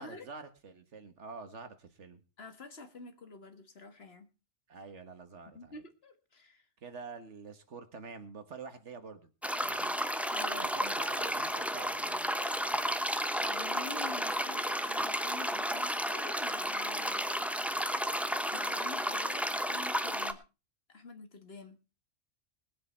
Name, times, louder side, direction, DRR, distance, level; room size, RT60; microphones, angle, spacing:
voice 1, 0.0-2.2 4.7-5.8 6.8-9.3 9.6-10.0 10.6-12.3, right 4 dB, 65° right, 9 dB, 1.7 m, -47 dB
voice 2, 2.4-4.3 5.5-6.7 10.3-10.9 13.4-17.2 18.5-20.4 20.9-21.8, left 4 dB, 50° left, 7 dB, 1.8 m, -48 dB
sound 1, 9.4-20.3, equal, ahead, 0.7 m, -32 dB
21.0 x 7.9 x 4.4 m, 0.32 s
omnidirectional pair, 1.3 m